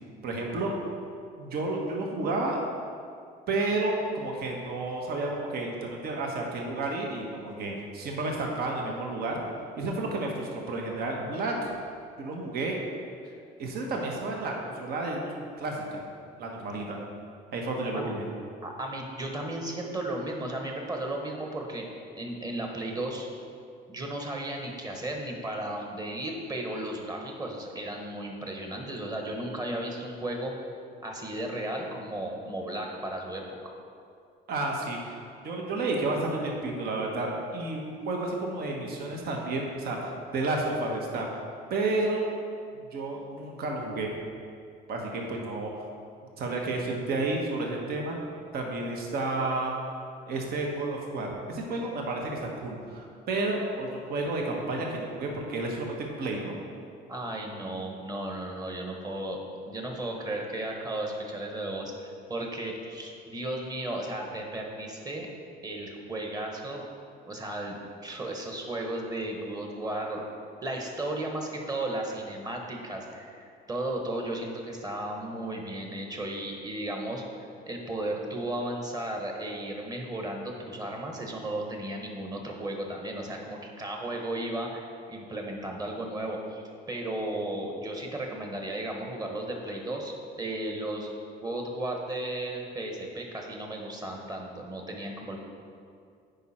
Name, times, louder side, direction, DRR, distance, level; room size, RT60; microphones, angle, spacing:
voice 1, 0.2-0.7 1.4-2.6 3.5-9.4 9.8-11.7 12.2-12.8 13.6-16.0 16.4-17.0 17.5-18.2 34.5-41.4 41.7-42.3 42.7-44.1 44.9-45.8 46.4-48.2 48.5-49.8 50.3-56.5, right 2 dB, 65° right, 0 dB, 1.2 m, -31 dB
voice 2, 18.6-21.8 22.2-23.3 23.9-30.6 31.0-33.7 57.1-65.3 65.6-66.9 67.3-70.3 70.6-91.1 91.4-95.4, right 1 dB, 20° right, 1 dB, 1.3 m, -35 dB
9.2 x 5.2 x 4.3 m, 2.3 s
cardioid pair, 110°, 17 cm